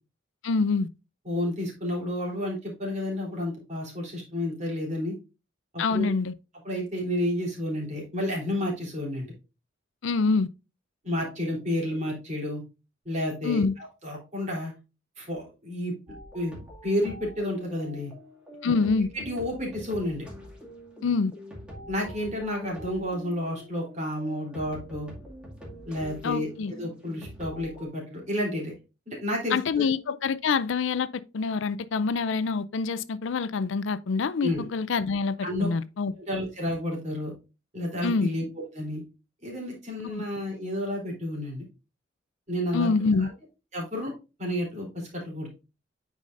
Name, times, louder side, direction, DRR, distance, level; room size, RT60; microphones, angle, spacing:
voice 1, 0.4-0.9 5.8-6.3 10.0-10.5 13.4-13.7 18.6-19.1 21.0-21.3 26.2-26.7 29.5-31.1 31.3-36.1 38.0-38.3 40.1-40.2 42.7-43.3, left 4 dB, 70° left, 0.5 m, -26 dB
voice 2, 1.2-5.1 5.7-6.1 6.6-9.3 11.0-12.6 13.0-13.6 14.0-14.7 15.2-15.9 16.3-16.5 16.8-18.1 18.6-18.7 19.1-20.2 21.9-25.1 25.9-28.7 29.1-29.9 34.4-34.6 35.4-35.7 36.2-37.3 37.7-38.4 38.7-39.0 39.4-41.6 42.5-42.9 43.2-43.3 43.7-44.1 44.4-45.5, left 1 dB, 35° right, 3.3 m, -31 dB
sound 1, 16.1-27.9, equal, 5° right, 2.1 m, -45 dB
9.3 x 4.9 x 2.5 m
head